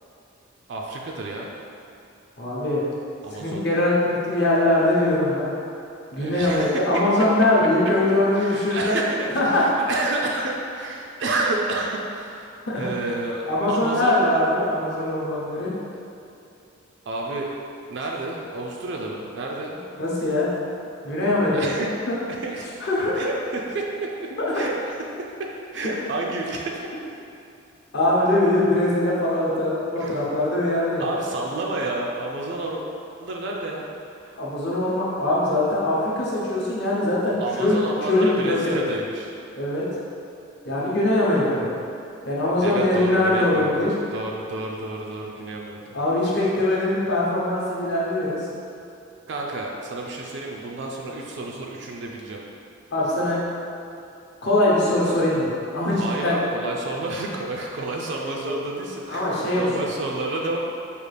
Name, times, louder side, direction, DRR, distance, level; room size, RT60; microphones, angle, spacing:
voice 1, 0.7-1.5 3.2-3.6 6.1-7.1 8.3-14.2 17.1-17.5 17.9-19.7 21.5-21.9 22.3-22.7 23.1-24.1 24.5-26.9 30.0-30.3 31.0-32.8 33.2-33.9 34.2-34.4 37.4-39.3 42.6-46.0 49.3-52.4 56.0-60.6, right 2 dB, 55° right, -1 dB, 0.3 m, -30 dB
voice 2, 2.4-2.8 3.4-5.5 6.1-9.0 9.3-9.6 12.7-12.9 13.5-15.7 20.0-20.5 21.0-22.2 22.8-23.2 27.9-31.0 34.4-38.8 39.6-39.8 40.7-41.7 42.2-43.9 45.9-48.4 52.9-53.4 54.4-56.4 59.1-59.7, left 1 dB, 55° left, -6 dB, 0.8 m, -22 dB
5.0 x 2.4 x 3.2 m, 2.7 s
head